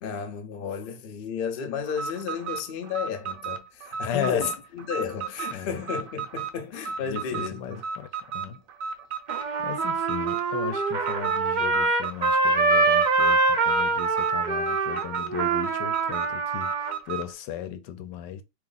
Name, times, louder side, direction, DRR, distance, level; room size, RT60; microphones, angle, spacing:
voice 1, 0.0-7.8, left 7 dB, 60° left, 0.5 m, -33 dB
Alarm, 1.9-17.3, right 6 dB, 65° right, 0.9 m, -35 dB
voice 2, 4.0-4.6 5.5-5.8 7.1-8.6 9.6-18.4, left 9 dB, 85° left, 1.3 m, -36 dB
Trumpet, 9.3-16.9, right 3 dB, 85° right, 0.4 m, -24 dB
3.4 x 3.0 x 3.9 m
omnidirectional pair, 1.9 m